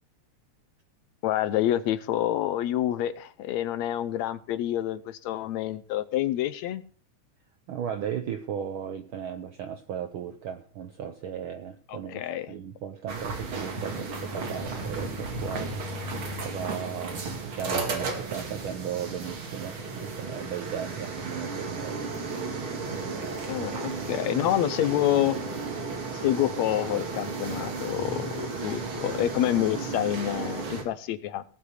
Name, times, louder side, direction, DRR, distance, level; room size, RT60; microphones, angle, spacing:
voice 1, 1.2-6.8 11.9-12.5 23.5-25.4 26.1-31.4, left 12 dB, 75° left, 14 dB, 1.9 m, -28 dB
voice 2, 7.7-12.2 12.5-15.8 16.4-22.0 22.9-23.7, right 8 dB, 85° right, 8 dB, 1.1 m, -36 dB
sound 1, 13.1-30.8, right 3 dB, 45° right, 2.8 m, -34 dB
18.0 x 6.2 x 6.6 m, 0.40 s
omnidirectional pair, 3.4 m